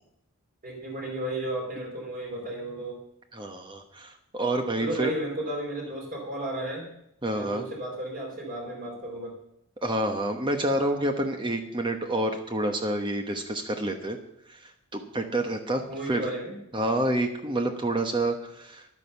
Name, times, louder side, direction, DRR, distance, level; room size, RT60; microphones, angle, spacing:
voice 1, 0.6-3.0 4.8-6.9 7.3-9.3 15.9-16.6, right 1 dB, 40° right, -3 dB, 4.6 m, -33 dB
voice 2, 3.3-5.1 7.2-7.6 9.8-14.2 14.5-16.3 16.7-18.9, right 1 dB, 20° right, 5 dB, 1.1 m, -28 dB
11.5 x 9.8 x 7.0 m, 0.78 s
head